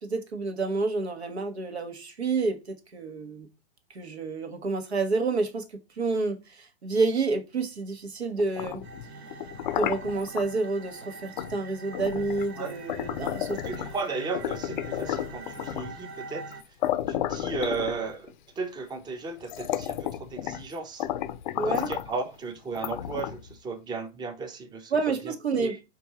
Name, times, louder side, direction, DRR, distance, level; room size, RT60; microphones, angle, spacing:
voice 1, 0.0-3.5 3.9-5.7 5.9-8.8 9.8-13.6 21.6-21.9 24.9-25.8, right 3 dB, 80° right, 1.1 m, -29 dB
sound 1, 8.4-10.5 11.4-11.6 11.9-14.0 14.3-16.0 16.5-16.6 16.8-18.3 19.0-19.1 19.4-20.7 21.0-22.1 22.7-23.5, left 12 dB, 50° left, 0.5 m, -32 dB
sound 2, 8.8-16.6, right 3 dB, 40° right, 1.2 m, -44 dB
voice 2, 13.6-16.4 17.1-21.1 21.6-24.9 25.2-25.8, right 4 dB, 15° right, 0.7 m, -35 dB
4.4 x 2.6 x 4.2 m
figure-of-eight pair, 110°, 32 cm